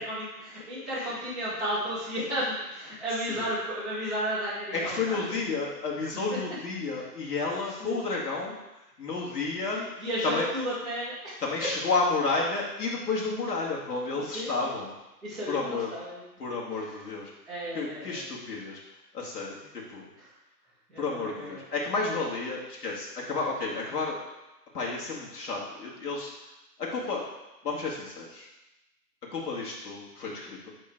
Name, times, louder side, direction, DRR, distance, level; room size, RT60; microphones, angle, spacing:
voice 1, 0.0-5.4 6.9-7.0 7.6-8.0 9.7-11.7 14.1-14.7 15.2-16.2 17.5-18.3 20.2-20.3 20.9-21.6, equal, ahead, -14 dB, 0.5 m, -34 dB
voice 2, 4.7-8.5 9.0-9.8 10.2-10.5 11.4-15.0 15.5-15.9 16.4-17.3 17.7-18.8 19.1-20.1 21.0-24.2 24.7-26.3 26.8-27.2 27.6-28.5 29.3-30.7, left 3 dB, 65° left, -4 dB, 2.3 m, -31 dB
9.0 x 3.2 x 4.5 m, 0.97 s
hypercardioid pair, 155°, 48 cm